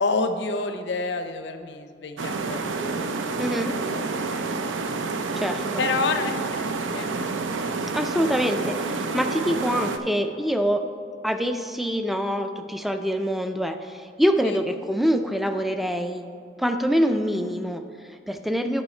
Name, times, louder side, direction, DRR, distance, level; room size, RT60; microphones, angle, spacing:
voice 1, 0.0-3.0 3.6-4.0 4.3-4.4 5.8-7.1 14.4-14.6, left 3 dB, 65° left, 8 dB, 0.6 m, -28 dB
sound 1, 2.2-10.0, right 3 dB, 85° right, 0.5 m, -28 dB
voice 2, 3.4-3.8 5.4-5.8 7.9-10.8 11.2-16.3 16.6-18.8, equal, ahead, 7 dB, 0.3 m, -25 dB
9.8 x 5.5 x 4.3 m, 2.4 s
head